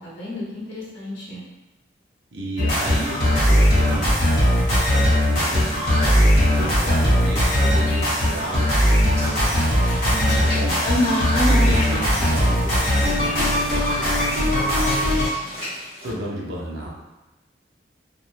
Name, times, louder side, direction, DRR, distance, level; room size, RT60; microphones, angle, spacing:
voice 1, 0.0-1.4 10.8-11.7, left 1 dB, 80° left, -7 dB, 0.8 m, -26 dB
voice 2, 2.3-9.6 10.1-14.6 16.0-16.9, right 1 dB, 75° right, -4 dB, 0.6 m, -33 dB
sound 1, 2.6-15.3, equal, 45° left, 1.0 m, -19 dB
Walk footsteps / Splash splatter, 8.7-16.1, left 1 dB, 45° right, 1.1 m, -35 dB
2.5 x 2.1 x 3.0 m, 1.1 s
head